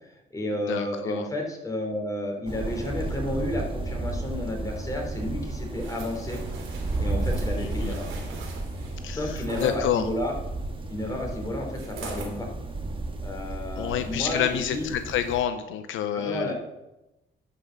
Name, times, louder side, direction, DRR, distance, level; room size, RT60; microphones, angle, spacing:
voice 1, 0.0-6.4 7.0-8.1 9.1-10.3 10.9-12.5 13.2-14.9 16.1-16.5, left 1 dB, 15° left, 0 dB, 3.6 m, -31 dB
voice 2, 0.7-1.3 7.6-7.9 9.0-10.0 13.7-16.5, left 10 dB, 80° left, 10 dB, 0.7 m, -28 dB
sound 1, 2.5-15.4, right 2 dB, 25° right, 1.6 m, -33 dB
sound 2, 5.7-9.8 11.7-12.4 12.9-13.0, right 5 dB, 90° right, 2.6 m, -43 dB
11.5 x 5.8 x 6.5 m, 0.97 s
cardioid pair, 90°, 20 cm